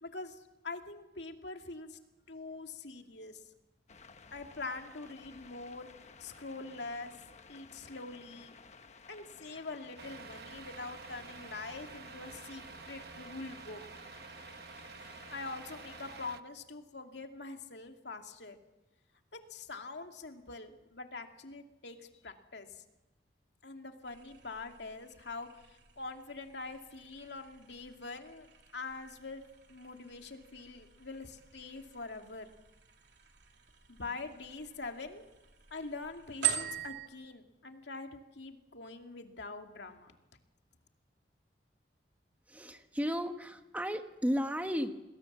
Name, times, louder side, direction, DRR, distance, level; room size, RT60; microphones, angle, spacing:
voice 1, 0.0-2.0 2.3-3.4 4.3-5.9 6.2-7.1 7.5-8.5 9.1-13.8 15.0-18.6 19.3-22.0 22.2-22.7 23.6-25.5 26.0-28.5 28.7-29.4 29.7-32.5 33.9-35.3 35.7-40.1, left 3 dB, 75° left, 4 dB, 2.4 m, -44 dB
sound 1, 3.9-16.3, left 4 dB, 40° left, 1.1 m, -55 dB
Truck, 10.0-16.4, right 5 dB, 60° right, 1.0 m, -50 dB
sound 2, 24.0-37.1, right 10 dB, 80° right, 2.9 m, -43 dB
voice 2, 42.5-44.9, equal, 10° right, 6 dB, 1.4 m, -34 dB
28.5 x 20.5 x 7.4 m, 1.0 s
head